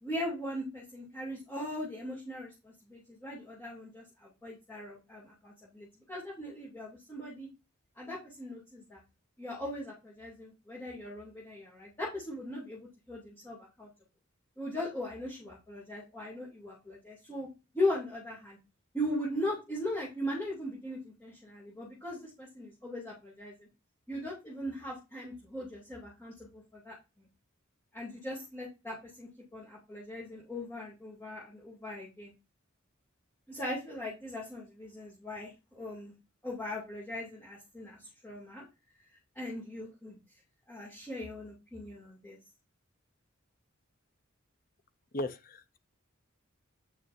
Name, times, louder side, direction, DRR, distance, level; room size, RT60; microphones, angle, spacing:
voice 1, 0.0-7.5 8.0-9.0 9.4-13.9 14.6-17.5 17.7-18.6 18.9-23.7 24.1-26.9 27.9-32.3 33.5-36.1 36.4-38.6 39.3-40.2 40.7-42.4, left 1 dB, 10° left, 2.7 m, -39 dB
voice 2, 45.1-45.8, left 1 dB, 45° left, 0.8 m, -36 dB
8.4 x 6.4 x 2.7 m
head